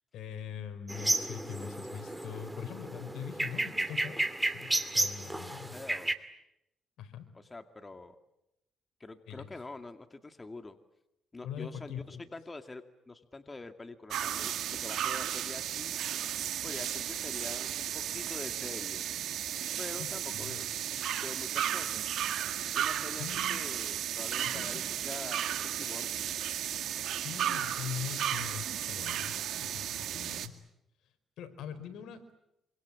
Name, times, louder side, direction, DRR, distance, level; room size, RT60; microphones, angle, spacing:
voice 1, 0.1-4.3 4.5-5.8 7.0-7.3 9.3-9.5 11.4-12.3 20.3-20.6 23.2-23.6 24.4-24.8 27.2-30.6 31.4-32.4, left 8 dB, 80° left, 10 dB, 4.2 m, -42 dB
sound 1, 0.9-6.1, right 1 dB, 10° right, 2.5 m, -33 dB
voice 2, 5.7-6.1 7.3-8.2 9.0-10.8 11.3-15.9 16.6-19.2 19.8-20.6 21.2-22.1 22.7-26.2, left 3 dB, 20° left, 8 dB, 2.2 m, -45 dB
sound 2, 14.1-30.5, right 11 dB, 75° right, 2.0 m, -34 dB
27.0 x 25.5 x 8.4 m, 0.83 s
cardioid pair, 90°, 0 cm